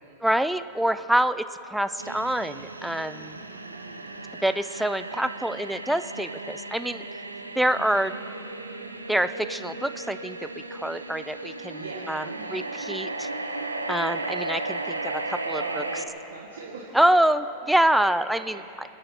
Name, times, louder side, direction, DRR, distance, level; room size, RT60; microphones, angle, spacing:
voice 1, 0.2-3.4 4.4-7.1 7.6-8.1 9.1-10.4 10.7-12.2 12.5-13.3 13.9-15.6 16.9-17.4 17.7-18.6, right 1 dB, ahead, 12 dB, 0.5 m, -25 dB
sound 1, 2.0-16.0, right 2 dB, 85° right, 0.9 m, -35 dB
voice 2, 3.3-4.3 7.8-8.1 11.8-12.6 15.5-17.0 17.6-18.8, right 4 dB, 65° right, -4 dB, 1.8 m, -43 dB
26.0 x 8.9 x 5.9 m, 2.8 s
figure-of-eight pair, 90°, 0 cm